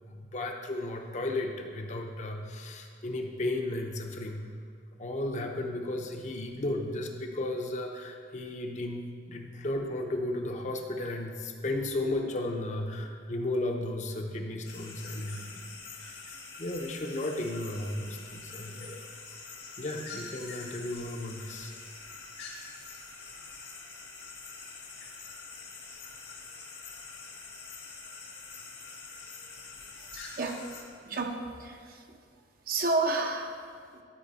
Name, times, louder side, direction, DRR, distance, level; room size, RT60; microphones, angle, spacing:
voice 1, 0.1-4.5 5.0-15.7 16.0-16.2 16.6-19.1 19.8-21.7, left 1 dB, 40° left, 3 dB, 0.7 m, -34 dB
sound 1, 14.6-30.8, left 4 dB, 80° left, 2.0 m, -45 dB
voice 2, 30.0-30.7 31.1-32.2 32.7-33.6 33.9-34.0, right 3 dB, 55° right, 3 dB, 0.8 m, -31 dB
12.5 x 4.5 x 4.1 m, 2.1 s
head